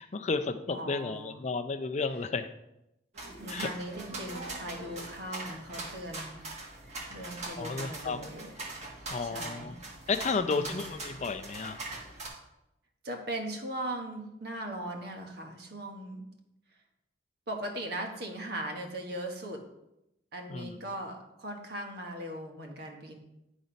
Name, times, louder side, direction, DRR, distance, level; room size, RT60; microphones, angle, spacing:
voice 1, 0.0-2.5 3.5-3.7 7.6-8.2 9.1-9.7 10.1-11.8 20.5-20.8, left 4 dB, 40° left, 9 dB, 0.5 m, -32 dB
voice 2, 0.7-1.4 3.4-6.4 7.1-8.9 9.2-9.7 10.4-11.0 13.0-16.2 17.5-19.6 20.3-23.2, right 1 dB, 60° right, 3 dB, 1.4 m, -39 dB
sound 1, 3.1-12.3, right 2 dB, 40° right, 1.7 m, -42 dB
10.0 x 4.0 x 5.1 m, 0.87 s
head